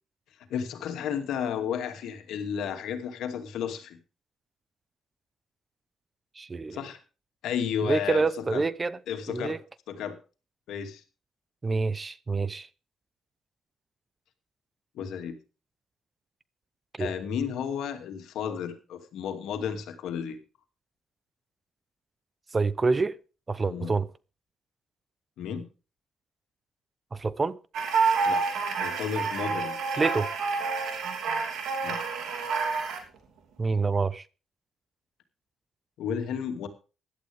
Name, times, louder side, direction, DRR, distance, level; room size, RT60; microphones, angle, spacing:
voice 1, 0.5-4.0 6.7-7.0 7.4-8.7 9.1-9.6 9.9-10.2 10.7-11.0 14.9-15.4 17.0-20.4 23.7-23.9 25.4-25.7 28.3-28.4 28.8-29.8 31.8-32.0 36.0-36.7, left 8 dB, 80° left, 2.4 m, -32 dB
voice 2, 6.4-6.8 7.8-9.0 9.3-9.6 11.6-12.7 17.0-17.1 22.5-23.2 23.5-24.1 27.1-27.6 30.0-30.3 33.6-34.2, right 4 dB, 30° right, 0.7 m, -27 dB
sound 1, 27.7-33.0, right 5 dB, 75° right, 3.1 m, -28 dB
16.5 x 11.5 x 3.5 m
cardioid pair, 90°, 0 cm